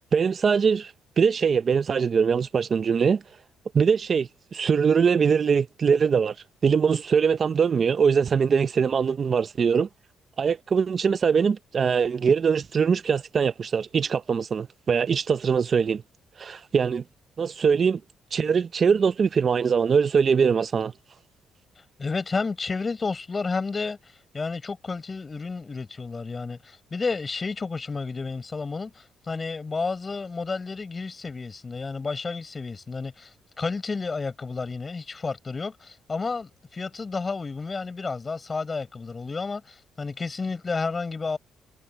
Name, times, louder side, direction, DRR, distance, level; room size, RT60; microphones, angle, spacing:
voice 1, 0.1-3.2 3.7-6.3 6.6-9.9 10.4-16.0 16.4-17.0 17.4-18.0 18.3-20.9, right 6 dB, 45° right, 0.6 m, -22 dB
voice 2, 22.0-41.4, left 4 dB, 30° left, 6.1 m, -31 dB
cardioid pair, 90°, 0 cm